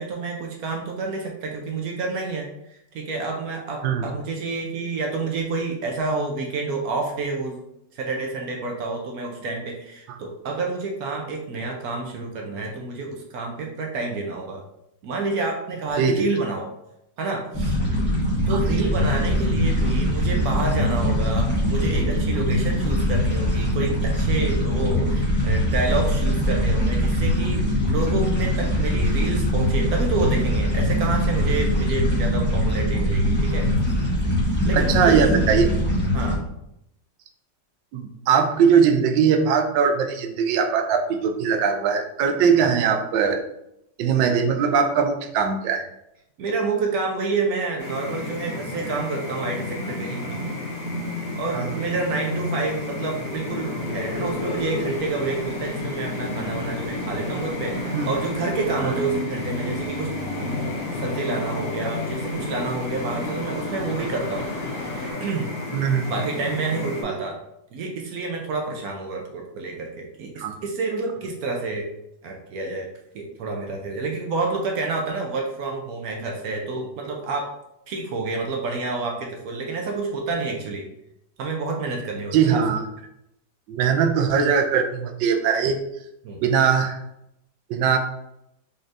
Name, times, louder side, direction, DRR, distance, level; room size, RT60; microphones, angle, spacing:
voice 1, 0.0-2.5 2.9-7.6 7.9-14.6 15.0-16.7 17.2-17.8 18.5-33.7 34.6-35.6 36.1-36.4 42.5-42.7 46.4-50.5 51.3-60.1 60.4-64.5 64.7-65.5 66.0-67.4 67.7-71.9 72.2-72.9 73.1-77.5 77.9-80.9 81.4-82.6 86.2-86.4, right 3 dB, 65° right, 1 dB, 1.0 m, -28 dB
voice 2, 16.0-16.3 18.5-18.6 34.7-35.7 37.9-43.4 44.0-45.9 51.5-51.7 57.9-58.1 58.8-58.9 65.7-66.1 67.0-67.1 70.4-70.5 82.3-82.9 83.7-85.8 86.4-87.0 87.7-88.0, right 6 dB, 85° right, 6 dB, 1.3 m, -20 dB
sound 1, 17.5-36.4, equal, 10° left, 0.8 m, -22 dB
sound 2, 47.8-67.0, left 2 dB, 55° left, 1.3 m, -31 dB
sound 3, 51.2-65.1, left 2 dB, 80° left, 0.6 m, -36 dB
3.9 x 3.3 x 2.5 m, 0.81 s
omnidirectional pair, 2.0 m